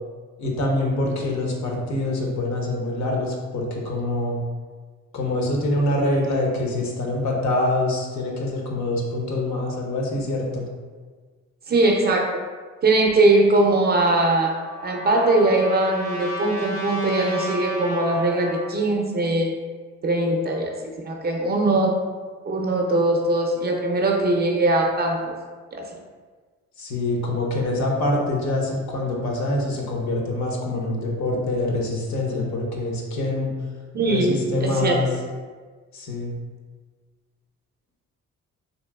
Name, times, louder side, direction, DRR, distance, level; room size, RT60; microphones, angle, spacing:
voice 1, 0.4-4.4 5.1-10.7 26.8-33.5 34.1-35.1 35.9-36.4, left 2 dB, 65° left, 0 dB, 0.7 m, -25 dB
voice 2, 11.7-12.4 12.8-14.6 14.8-19.6 20.0-22.0 22.4-25.4 25.7-25.9 33.9-35.0, right 2 dB, 35° right, 1 dB, 0.4 m, -21 dB
Trumpet, 14.0-18.7, equal, 90° left, 1.3 m, -33 dB
2.9 x 2.7 x 2.3 m, 1.5 s
cardioid pair, 90°, 30 cm